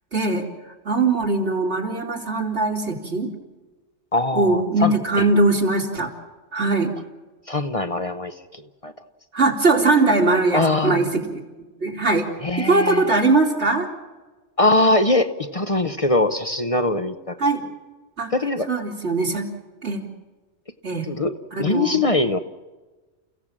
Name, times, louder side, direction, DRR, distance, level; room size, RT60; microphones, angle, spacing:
voice 1, 0.1-0.5 0.9-3.3 4.3-6.1 6.5-6.9 9.3-11.2 11.8-12.3 12.6-13.9 17.4-17.6 18.2-18.3 18.7-19.5 19.8-20.1 20.8-21.1 21.5-22.1, right 3 dB, 80° right, 0 dB, 3.4 m, -20 dB
voice 2, 4.1-5.3 7.5-8.9 10.5-11.1 12.4-13.0 14.6-17.4 18.3-18.7 21.0-21.3 21.6-22.4, left 2 dB, 35° left, 8 dB, 0.9 m, -22 dB
29.0 x 16.5 x 7.4 m, 1.2 s
omnidirectional pair, 1.1 m